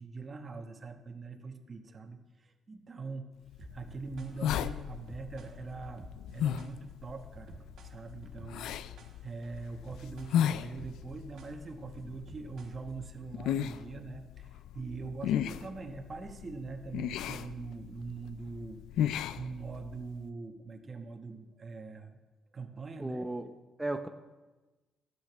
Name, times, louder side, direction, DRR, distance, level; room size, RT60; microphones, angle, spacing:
voice 1, 0.0-18.8 19.1-22.2 22.5-23.3, right 4 dB, 35° right, 5 dB, 1.2 m, -43 dB
sound 1, 3.5-20.1, left 10 dB, 85° left, 0.4 m, -36 dB
sound 2, 3.6-13.2, right 4 dB, 75° right, 1.7 m, -53 dB
voice 2, 23.0-23.5 23.8-24.1, right 1 dB, 10° right, 7 dB, 0.6 m, -34 dB
12.0 x 8.0 x 6.0 m, 1.2 s
cardioid pair, 90°, 0 cm